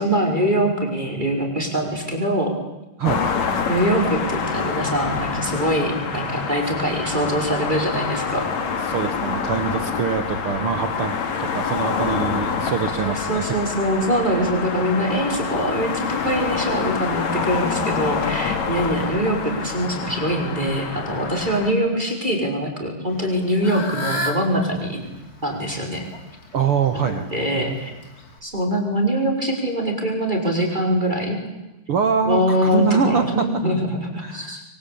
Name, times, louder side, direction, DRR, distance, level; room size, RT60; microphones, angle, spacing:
voice 1, 0.0-2.5 3.7-8.5 13.0-25.0 25.4-26.0 26.9-27.9 28.4-31.4 32.2-34.6, equal, 10° right, 2 dB, 4.9 m, -23 dB
sound 1, 3.0-21.7, left 6 dB, 50° left, 3.0 m, -26 dB
voice 2, 8.9-13.5 26.5-27.3 31.9-33.4 34.2-34.6, right 6 dB, 70° right, 8 dB, 1.3 m, -24 dB
Fowl / Bird, 23.1-28.4, left 1 dB, 25° left, 2.8 m, -33 dB
27.0 x 23.5 x 8.6 m, 1.0 s
omnidirectional pair, 4.5 m